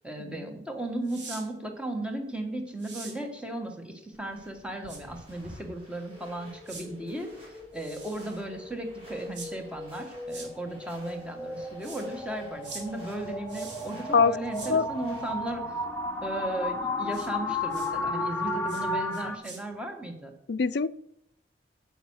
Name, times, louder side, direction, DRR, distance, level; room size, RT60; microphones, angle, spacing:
voice 1, 0.0-15.8 16.2-20.3, right 1 dB, 5° right, 3 dB, 1.5 m, -36 dB
sound 1, 1.0-1.4 2.8-3.2 4.9-5.0 6.7-6.8 7.7-8.4 9.3-9.5 10.3-10.5 11.8-12.0 12.6-12.8 13.5-14.0 14.5-14.7 17.1-17.3 17.7-17.9 18.7-18.8 19.1-19.6, right 4 dB, 80° right, 3.5 m, -43 dB
sound 2, 4.1-15.6, equal, 30° right, 5.3 m, -53 dB
sound 3, 6.1-19.4, left 2 dB, 10° left, 1.1 m, -35 dB
voice 2, 20.5-20.9, left 5 dB, 65° left, 16 dB, 0.4 m, -23 dB
9.4 x 8.5 x 6.3 m, 0.79 s
head